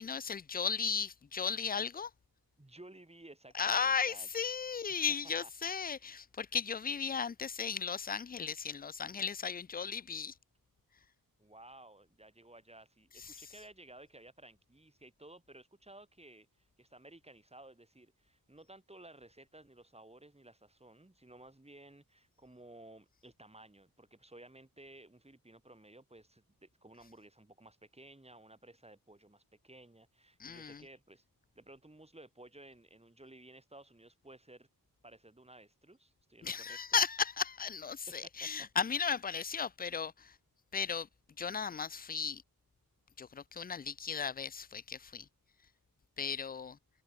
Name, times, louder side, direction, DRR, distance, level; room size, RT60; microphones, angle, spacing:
voice 1, 0.0-2.1 3.5-10.3 13.2-13.4 30.4-30.8 36.4-40.4 40.7-41.1 41.4-42.4 43.2-45.3 46.2-46.8, left 6 dB, 25° left, 0.4 m, -35 dB
voice 2, 2.6-4.3 4.9-5.0 5.4-6.1 11.4-31.2 31.5-34.7 35.0-36.8 38.1-38.7, right 1 dB, 15° right, 4.3 m, -56 dB
wide cardioid pair, 110°, 37 cm